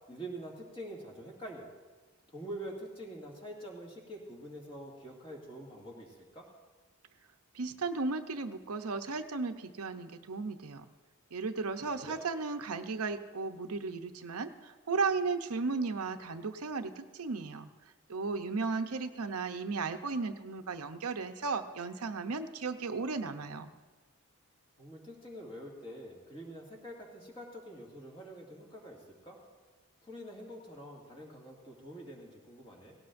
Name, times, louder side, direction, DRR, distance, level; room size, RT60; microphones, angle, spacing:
voice 1, 0.1-1.7 2.3-6.5 12.0-12.2 24.8-29.4 30.0-33.0, right 1 dB, 25° left, -2 dB, 2.2 m, -46 dB
voice 2, 7.5-10.8 11.3-17.7 18.1-23.7, right 4 dB, 85° right, 7 dB, 0.7 m, -35 dB
17.5 x 17.0 x 2.6 m, 1.3 s
head